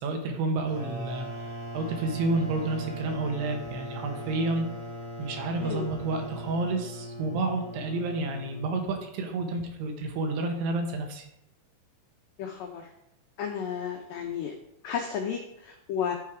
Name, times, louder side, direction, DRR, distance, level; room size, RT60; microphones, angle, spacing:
voice 1, 0.0-1.5 1.7-4.7 5.2-11.2, right 3 dB, 75° right, 4 dB, 3.2 m, -30 dB
sound 1, 0.6-9.1, equal, 50° right, 2.0 m, -39 dB
voice 2, 12.4-12.9 13.4-14.5 14.8-16.1, left 7 dB, 90° left, 3 dB, 1.9 m, -33 dB
12.0 x 4.6 x 4.9 m, 0.83 s
omnidirectional pair, 4.9 m